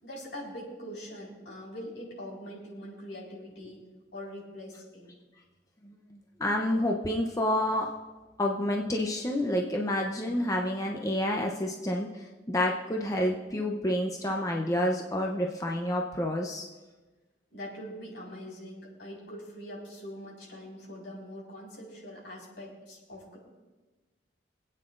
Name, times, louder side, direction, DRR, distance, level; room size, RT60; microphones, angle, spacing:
voice 1, 0.0-3.8 4.1-5.1 17.5-23.4, equal, 75° left, -4 dB, 4.6 m, -43 dB
voice 2, 5.8-7.9 8.4-16.7, left 1 dB, 20° left, 0 dB, 0.7 m, -29 dB
26.0 x 8.8 x 2.5 m, 1.2 s
head